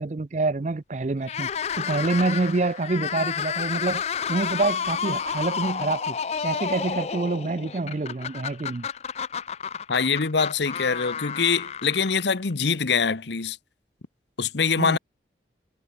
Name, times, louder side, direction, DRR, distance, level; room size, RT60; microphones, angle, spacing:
voice 1, 0.0-1.5 1.8-6.2 6.4-8.9 14.8-15.0, right 3 dB, 40° right, 0.5 m, -27 dB
sound 1, 1.2-12.5, left 7 dB, 35° left, 0.3 m, -31 dB
voice 2, 9.9-13.6 14.4-15.0, left 5 dB, 75° left, 0.9 m, -24 dB
head